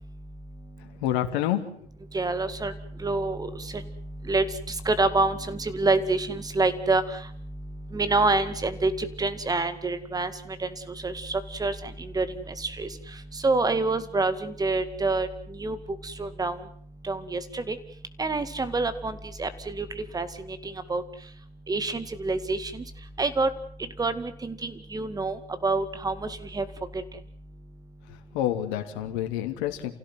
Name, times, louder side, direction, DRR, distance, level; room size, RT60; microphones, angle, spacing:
voice 1, 0.8-1.6 28.1-29.9, left 12 dB, 50° left, 4 dB, 3.1 m, -28 dB
voice 2, 2.1-2.7 3.0-3.5 4.3-4.5 4.9-7.0 7.9-10.3 11.0-11.8 12.1-12.3 12.6-12.9 13.4-15.3 15.6-15.8 16.0-16.6 17.1-17.8 18.2-20.3 20.9-21.0 21.7-22.8 23.2-23.5 24.0-26.2 26.5-26.6, right 3 dB, 10° right, 13 dB, 2.2 m, -26 dB
29.0 x 16.5 x 7.9 m, 0.63 s
figure-of-eight pair, 95°, 33 cm